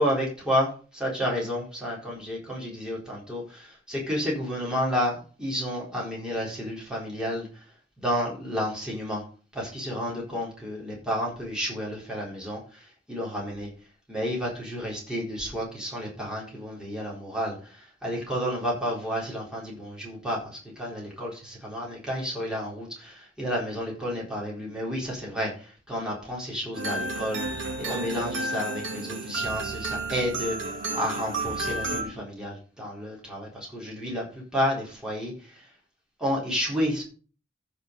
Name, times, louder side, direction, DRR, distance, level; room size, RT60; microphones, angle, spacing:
voice 1, 0.0-7.6 8.0-9.2 9.5-13.7 14.1-35.6 36.2-37.0, equal, 5° right, -4 dB, 4.2 m, -31 dB
sound 1, 26.8-32.0, right 2 dB, 70° right, 2.6 m, -31 dB
15.0 x 5.4 x 5.3 m, 0.38 s
head